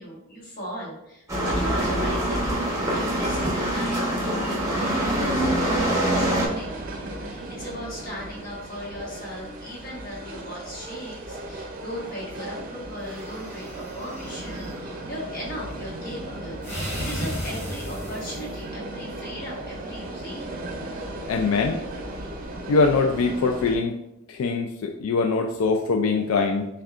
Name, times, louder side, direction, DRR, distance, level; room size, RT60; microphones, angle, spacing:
voice 1, 0.0-20.7, equal, 45° left, -5 dB, 1.3 m, -37 dB
sound 1, 1.3-6.5, right 1 dB, 15° right, 0.9 m, -24 dB
sound 2, 5.9-23.8, right 2 dB, 40° right, 0.6 m, -36 dB
sound 3, 13.0-14.8 16.6-18.6, equal, 10° left, 1.4 m, -35 dB
voice 2, 21.3-21.8 22.7-24.0 24.3-26.7, left 4 dB, 85° left, 3 dB, 0.3 m, -22 dB
6.2 x 2.3 x 2.4 m, 0.85 s
head